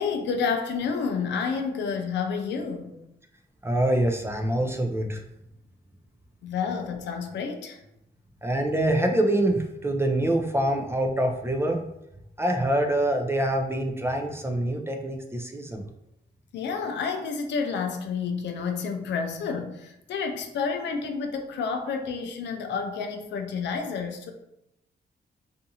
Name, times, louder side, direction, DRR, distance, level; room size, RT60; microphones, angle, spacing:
voice 1, 0.0-3.0 6.4-7.8 16.5-24.3, left 5 dB, 85° left, 5 dB, 0.4 m, -30 dB
voice 2, 3.6-5.2 8.4-11.8 12.4-15.9, right 1 dB, 15° right, 3 dB, 0.4 m, -25 dB
2.6 x 2.4 x 2.7 m, 0.85 s
cardioid pair, 80°, 18 cm